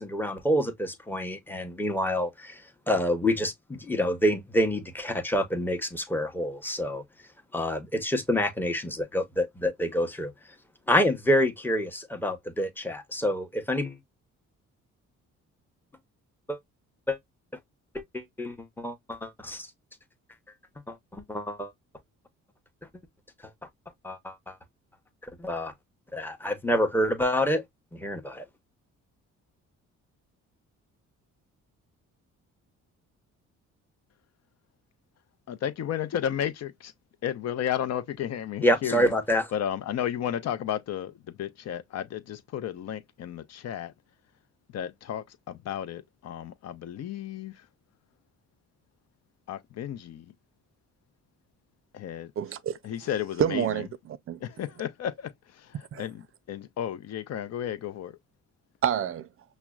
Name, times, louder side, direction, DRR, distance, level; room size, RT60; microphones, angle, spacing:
voice 1, 0.0-2.6 2.9-7.0 7.5-10.3 10.9-14.0 16.5-16.6 17.1-17.2 18.1-19.7 20.9-21.7 24.0-24.5 25.4-25.7 26.1-27.6 27.9-28.4 38.6-39.5, equal, 5° left, 0.8 m, -27 dB
voice 2, 35.5-36.9 37.2-39.1 39.5-43.9 44.7-47.5 49.5-50.3 51.9-52.3 52.8-53.7 54.4-55.3 55.6-55.7 56.0-56.2 56.5-58.1, left 10 dB, 60° left, 0.6 m, -33 dB
voice 3, 52.4-52.8 53.4-54.4 55.9-56.1 58.8-59.3, right 9 dB, 45° right, 0.5 m, -28 dB
5.7 x 2.1 x 2.3 m
cardioid pair, 90°, 30 cm